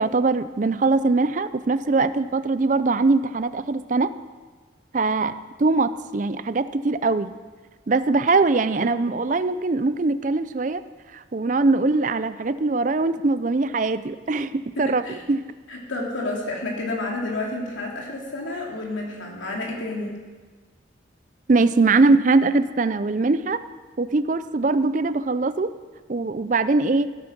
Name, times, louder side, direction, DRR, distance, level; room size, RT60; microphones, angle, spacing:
voice 1, 0.0-4.1 4.9-7.3 7.9-10.8 11.1-15.0 15.3-15.4 21.5-23.6 24.0-25.7 26.1-27.1, right 3 dB, 40° right, 13 dB, 0.5 m, -21 dB
voice 2, 14.8-15.2 15.7-20.2, left 2 dB, 80° left, -1 dB, 2.8 m, -30 dB
15.0 x 8.8 x 6.1 m, 1.4 s
head